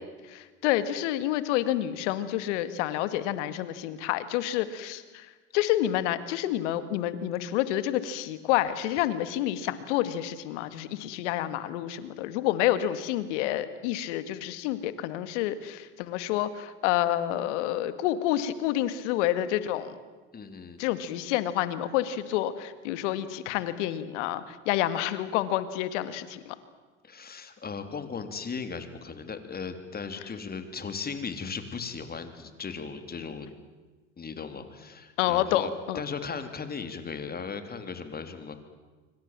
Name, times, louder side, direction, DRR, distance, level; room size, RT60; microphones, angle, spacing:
voice 1, 0.3-5.3 5.5-19.9 20.8-26.6 35.2-36.0, left 13 dB, 70° left, 13 dB, 2.1 m, -28 dB
voice 2, 20.3-20.8 27.0-33.5 34.2-38.6, left 5 dB, 25° left, 8 dB, 3.4 m, -37 dB
27.0 x 24.5 x 7.5 m, 1.3 s
hypercardioid pair, 90°, 37 cm